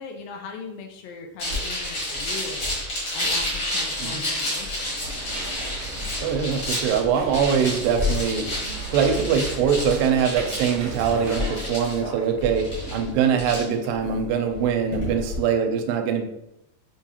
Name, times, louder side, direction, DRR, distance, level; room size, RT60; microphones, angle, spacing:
voice 1, 0.0-2.7 3.1-5.1, left 4 dB, 85° left, 3 dB, 2.2 m, -39 dB
sound 1, 1.4-15.4, left 1 dB, 50° left, 1.3 m, -30 dB
sound 2, 5.0-11.7, right 3 dB, 70° right, 1.3 m, -37 dB
voice 2, 6.2-8.5 8.9-16.3, right 7 dB, 85° right, 5 dB, 2.3 m, -23 dB
6.3 x 2.3 x 2.8 m, 0.80 s
omnidirectional pair, 4.0 m